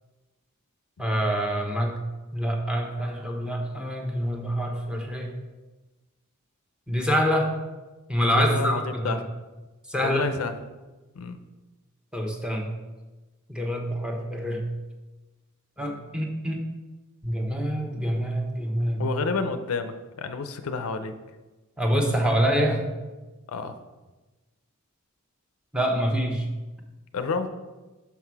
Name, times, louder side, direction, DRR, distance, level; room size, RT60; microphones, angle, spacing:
voice 1, 1.0-2.0 2.3-5.3 6.9-7.5 8.1-9.2 9.9-10.3 12.1-12.7 13.5-14.7 15.8-16.6 17.2-19.0 21.8-22.8 25.7-26.4, equal, 5° right, 2 dB, 0.9 m, -26 dB
voice 2, 8.3-9.2 10.0-10.6 11.2-11.4 19.0-21.1 23.5-23.8 27.1-27.5, left 4 dB, 70° left, 9 dB, 0.5 m, -29 dB
6.0 x 5.7 x 4.6 m, 1.2 s
head